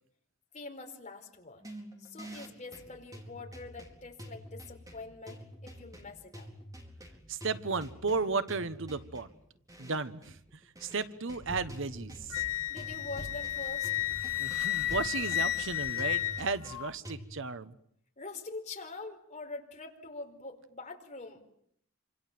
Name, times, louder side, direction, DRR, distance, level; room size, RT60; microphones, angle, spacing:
voice 1, 0.5-1.6 2.0-6.5 12.7-13.9 18.2-21.4, left 3 dB, 35° left, 3 dB, 4.7 m, -44 dB
sound 1, 1.6-17.2, equal, 15° right, 4.5 m, -47 dB
voice 2, 7.3-9.3 9.8-10.4 10.8-12.4 14.4-17.8, right 4 dB, 60° right, 13 dB, 1.1 m, -34 dB
sound 2, 11.3-16.4, equal, 55° left, 4.3 m, -49 dB
Wind instrument woodwind instrument, 12.3-16.9, left 13 dB, 80° left, 1.1 m, -32 dB
27.5 x 26.5 x 7.6 m, 0.70 s
head